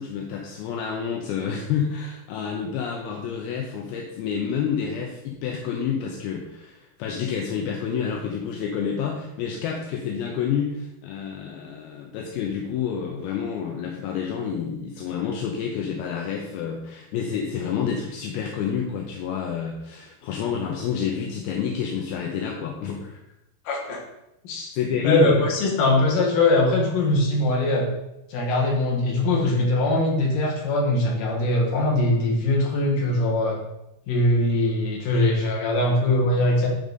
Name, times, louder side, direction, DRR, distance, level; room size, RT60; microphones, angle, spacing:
voice 1, 0.0-23.2 24.7-25.4, left 7 dB, 80° left, 0 dB, 2.4 m, -29 dB
voice 2, 23.7-24.0 24.4-24.7 25.0-27.9 28.3-33.6 34.1-36.7, left 2 dB, 60° left, -1 dB, 2.8 m, -21 dB
10.5 x 3.8 x 4.0 m, 0.88 s
omnidirectional pair, 4.9 m